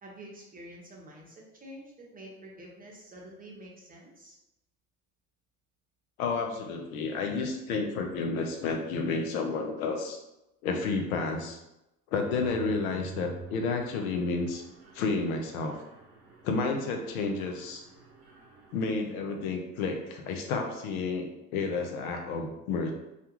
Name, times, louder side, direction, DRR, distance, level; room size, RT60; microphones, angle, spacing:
voice 1, 0.0-1.3 1.6-4.4, right 1 dB, 20° right, -2 dB, 0.7 m, -48 dB
voice 2, 6.2-10.2 10.6-11.6 12.1-14.6 14.9-15.7 16.4-17.8 18.7-22.9, left 4 dB, 75° left, 3 dB, 0.6 m, -31 dB
Mechanisms, 12.2-18.9, right 4 dB, 80° right, 0.7 m, -48 dB
2.4 x 2.2 x 2.9 m, 0.91 s
hypercardioid pair, 70°, 43 cm